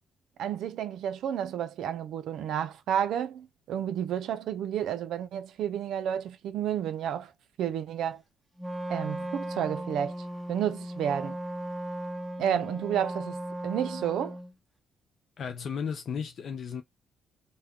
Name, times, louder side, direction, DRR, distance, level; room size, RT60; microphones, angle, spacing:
voice 1, 0.4-7.3 7.6-8.2 8.9-10.1 10.5-11.4 12.4-13.4 13.6-14.4, right 9 dB, 75° right, 0.4 m, -31 dB
Wind instrument woodwind instrument, 8.6-14.5, right 1 dB, 10° right, 0.8 m, -36 dB
voice 2, 15.4-16.8, left 6 dB, 60° left, 0.5 m, -34 dB
2.2 x 2.1 x 3.6 m
cardioid pair, 90°, 0 cm